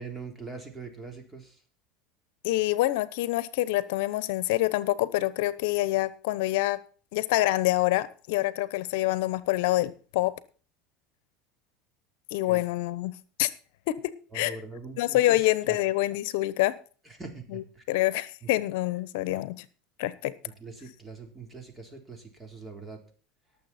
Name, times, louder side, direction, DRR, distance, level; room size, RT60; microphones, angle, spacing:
voice 1, 0.0-1.6 12.4-12.6 14.3-15.8 17.0-17.8 18.4-18.5 20.4-23.0, right 4 dB, 15° right, 4 dB, 3.7 m, -42 dB
voice 2, 2.4-6.8 7.1-10.3 12.3-13.1 13.4-13.5 13.9-14.6 15.0-16.7 17.5-17.6 17.9-19.6 20.0-20.3, left 17 dB, 75° left, 17 dB, 0.9 m, -26 dB
18.5 x 7.2 x 4.3 m, 0.39 s
supercardioid pair, 115°, 0 cm